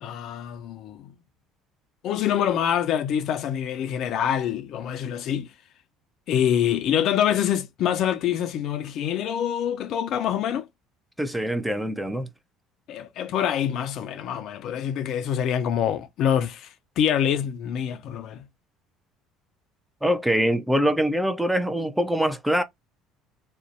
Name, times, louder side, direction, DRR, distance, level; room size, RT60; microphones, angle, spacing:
voice 1, 0.0-1.1 2.0-5.5 6.3-10.7 12.9-16.7 17.0-18.4, left 9 dB, 55° left, 0.4 m, -25 dB
voice 2, 11.2-12.3 20.0-22.6, equal, 5° right, 0.4 m, -24 dB
2.5 x 2.1 x 2.5 m
hypercardioid pair, 60°, 0 cm